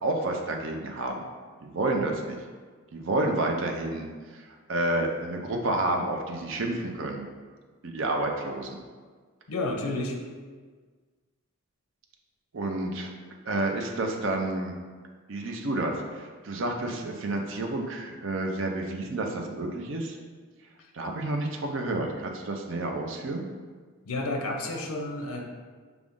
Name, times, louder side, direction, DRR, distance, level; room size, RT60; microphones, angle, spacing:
voice 1, 0.0-1.1 1.6-2.4 2.9-4.1 4.3-7.3 7.8-8.8 12.5-13.1 13.5-14.8 15.3-20.2 20.9-23.5, right 2 dB, 60° right, 2 dB, 0.5 m, -30 dB
voice 2, 9.5-10.2 24.1-25.4, left 2 dB, 80° left, 2 dB, 0.6 m, -31 dB
5.0 x 2.4 x 3.6 m, 1.5 s
head